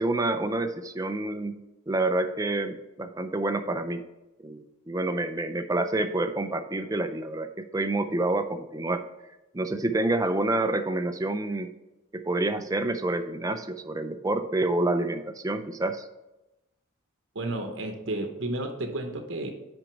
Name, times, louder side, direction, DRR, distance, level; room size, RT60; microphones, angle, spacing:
voice 1, 0.0-4.0 4.4-9.0 9.5-11.7 12.1-16.1, right 2 dB, 15° right, 9 dB, 0.4 m, -28 dB
voice 2, 17.3-19.5, right 2 dB, 60° right, 4 dB, 0.8 m, -32 dB
6.0 x 5.2 x 5.9 m, 0.99 s
head